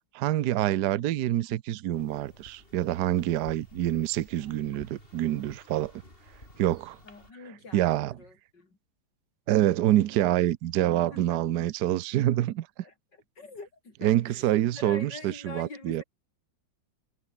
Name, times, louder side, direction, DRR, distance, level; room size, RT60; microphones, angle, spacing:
voice 1, 0.1-5.9 6.6-7.0 7.7-8.1 9.5-12.7 14.0-16.0, right 13 dB, 65° right, 1.2 m, -26 dB
sound 1, 1.9-7.3, left 1 dB, 25° left, 7.3 m, -53 dB
voice 2, 7.0-8.8 10.8-11.7 12.8-16.0, left 3 dB, 65° left, 5.3 m, -45 dB
omnidirectional pair, 2.1 m